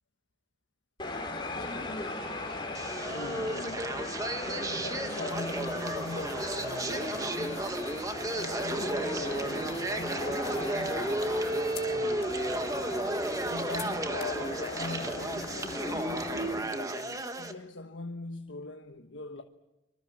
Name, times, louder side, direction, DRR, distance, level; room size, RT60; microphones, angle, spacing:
sound 1, 1.0-16.6, left 2 dB, 25° left, 4.5 m, -38 dB
sound 2, 2.7-17.5, right 1 dB, 20° right, 1.4 m, -33 dB
voice 1, 3.1-4.1 4.4-7.9 8.3-11.4 11.6-12.3 13.4-19.4, left 3 dB, 85° left, 1.3 m, -41 dB
sound 3, 5.3-17.5, left 9 dB, 55° left, 2.9 m, -52 dB
25.5 x 25.0 x 7.5 m
head